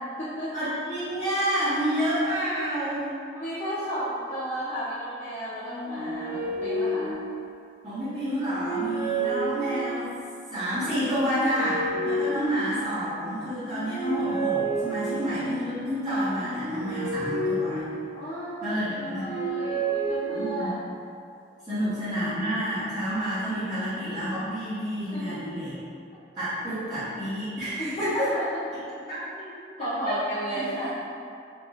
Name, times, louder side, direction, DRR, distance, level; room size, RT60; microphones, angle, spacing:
voice 1, 0.0-0.7 3.3-7.2 12.0-12.2 18.1-18.7 19.0-20.7 21.7-21.8 25.1-25.4 27.8-28.6 29.4-30.9, equal, 40° left, -11 dB, 0.6 m, -33 dB
voice 2, 0.5-3.1 7.8-10.1 10.5-17.8 18.6-19.3 20.3-20.7 21.7-25.7 26.4-28.3 29.1-29.2, equal, 30° right, -19 dB, 1.3 m, -29 dB
sound 1, 5.6-7.7 8.2-10.2 10.9-13.0 13.5-15.5 16.2-18.4 18.9-20.9, right 2 dB, 10° right, 0.6 m, -31 dB
4.7 x 2.9 x 2.5 m, 2.4 s
head